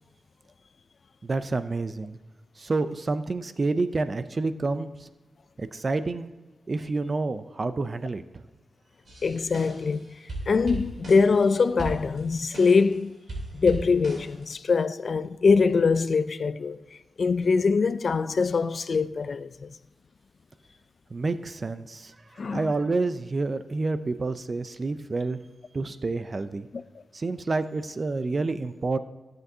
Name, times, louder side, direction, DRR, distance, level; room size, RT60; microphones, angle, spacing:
voice 1, 1.2-2.2 2.6-4.9 5.6-6.3 6.7-8.2 21.1-22.1 22.5-25.4 25.7-26.7 27.1-29.0, right 3 dB, 40° right, 0.4 m, -28 dB
sound 1, 9.1-10.0 10.3-11.5 11.8-13.0 13.3-14.4, right 1 dB, 60° right, 3.2 m, -37 dB
voice 2, 9.2-10.1 10.5-13.2 13.5-16.8 17.2-19.7 22.4-22.7 26.7-26.8, left 4 dB, 55° left, 0.3 m, -23 dB
15.0 x 7.8 x 2.7 m
wide cardioid pair, 90°, 0 cm